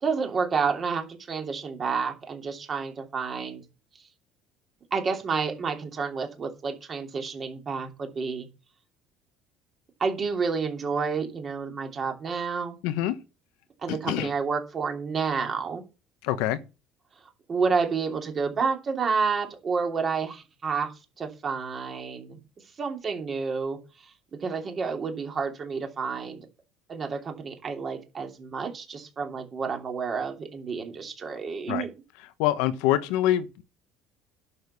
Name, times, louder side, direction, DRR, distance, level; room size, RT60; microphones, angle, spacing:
voice 1, 0.0-3.6 4.9-8.5 10.0-12.8 13.8-15.8 17.5-20.9 21.2-22.4 22.8-23.8 24.4-26.4 26.9-31.9, right 5 dB, 30° right, 2.9 m, -29 dB
voice 2, 12.8-13.2 13.9-14.3 16.2-16.6 31.7-31.8 32.4-33.6, left 13 dB, 85° left, 1.2 m, -25 dB
11.0 x 6.5 x 7.0 m
cardioid pair, 140°, 0 cm